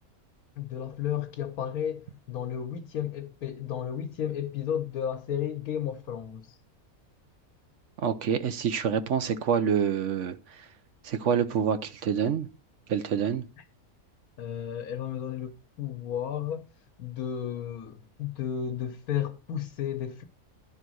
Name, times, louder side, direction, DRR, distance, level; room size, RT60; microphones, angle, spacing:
voice 1, 0.6-6.6 13.6-13.7 14.4-16.6 17.0-20.2, left 9 dB, 80° left, 1.3 m, -33 dB
voice 2, 8.0-10.6 11.0-12.5 12.9-13.4, right 7 dB, 60° right, 1.0 m, -27 dB
11.5 x 4.0 x 6.2 m
omnidirectional pair, 1.5 m